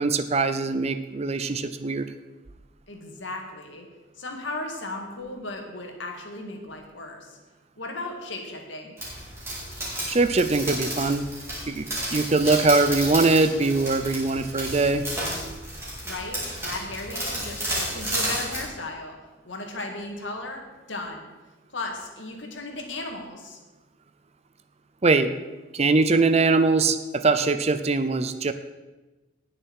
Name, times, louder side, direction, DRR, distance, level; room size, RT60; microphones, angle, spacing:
voice 1, 0.0-2.1 10.1-11.3 11.7-15.0 25.0-25.3 25.7-28.5, right 3 dB, 30° right, 10 dB, 0.5 m, -22 dB
voice 2, 2.9-3.9 4.2-7.4 7.8-8.9 16.0-19.2 19.4-21.3 21.7-23.6, left 2 dB, 65° left, 2 dB, 2.1 m, -36 dB
sound 1, 9.0-18.6, right 1 dB, 15° right, 3.9 m, -32 dB
19.0 x 6.6 x 4.8 m, 1.1 s
head